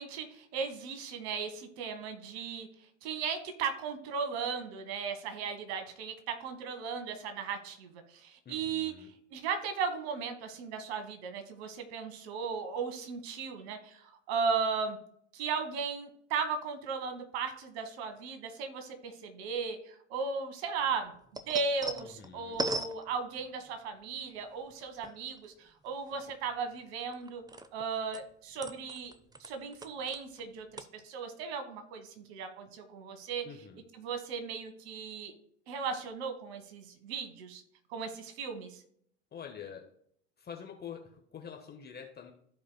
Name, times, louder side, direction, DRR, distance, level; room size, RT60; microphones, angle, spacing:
voice 1, 0.0-2.7 3.0-15.0 15.3-21.1 21.5-27.4 27.7-29.1 29.4-33.4 34.0-35.3 35.7-37.6 37.9-38.8, right 5 dB, 65° right, 7 dB, 1.6 m, -36 dB
voice 2, 8.4-9.1 22.0-22.6 33.4-33.8 39.3-39.9 40.4-42.3, left 7 dB, 30° left, 2 dB, 1.2 m, -46 dB
sound 1, 20.8-23.8 24.4-25.5 25.9-27.9 28.1-30.5 30.7-30.8, right 2 dB, 10° right, 0.7 m, -40 dB
14.5 x 5.0 x 2.2 m, 0.68 s
hypercardioid pair, 75°, 34 cm